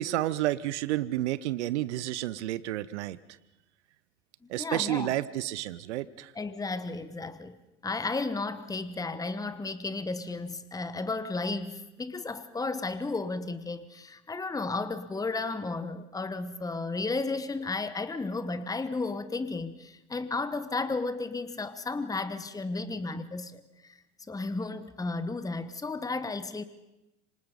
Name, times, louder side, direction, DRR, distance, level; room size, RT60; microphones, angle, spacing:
voice 1, 0.0-3.2 4.5-6.3, right 15 dB, 70° right, 18 dB, 0.9 m, -30 dB
voice 2, 4.6-5.1 6.3-7.6 7.8-24.0 24.3-26.6, left 3 dB, 10° left, 13 dB, 1.2 m, -33 dB
27.0 x 25.5 x 5.4 m, 0.95 s
figure-of-eight pair, 75°, 35 cm